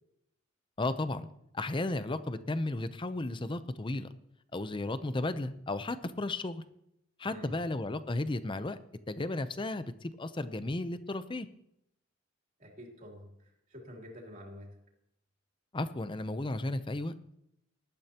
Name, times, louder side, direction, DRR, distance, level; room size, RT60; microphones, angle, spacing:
voice 1, 0.8-1.3 1.5-4.1 4.5-6.6 7.2-8.8 9.1-11.5 15.7-17.1, left 2 dB, 25° left, 12 dB, 0.6 m, -34 dB
voice 2, 12.6-14.7, equal, 45° right, -1 dB, 3.1 m, -48 dB
19.0 x 12.0 x 2.9 m, 0.79 s
head